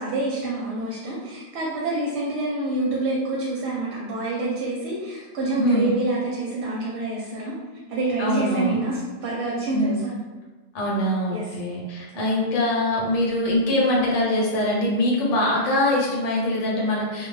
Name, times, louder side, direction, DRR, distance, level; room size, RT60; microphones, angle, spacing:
voice 1, 0.0-7.5 7.9-10.1 11.3-11.6 12.1-12.5, right 2 dB, 65° right, -4 dB, 0.8 m, -27 dB
voice 2, 5.6-5.9 8.2-8.8 9.7-10.0 10.7-17.3, left 1 dB, 75° left, -4 dB, 1.0 m, -23 dB
2.2 x 2.1 x 3.0 m, 1.3 s
omnidirectional pair, 1.3 m